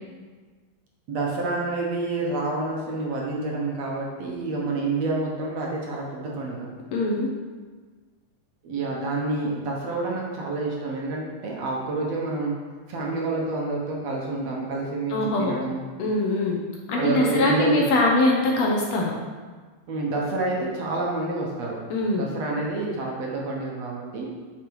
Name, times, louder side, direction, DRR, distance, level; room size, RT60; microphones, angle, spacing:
voice 1, 1.1-6.7 8.6-12.5 12.9-15.8 17.0-17.9 19.9-21.8 22.2-24.3, right 2 dB, 60° right, -3 dB, 2.3 m, -28 dB
voice 2, 6.9-7.3 15.1-15.5 16.0-16.6 16.9-19.1 21.9-22.3, left 2 dB, 65° left, -2 dB, 2.0 m, -22 dB
8.0 x 6.6 x 4.8 m, 1.4 s
omnidirectional pair, 3.6 m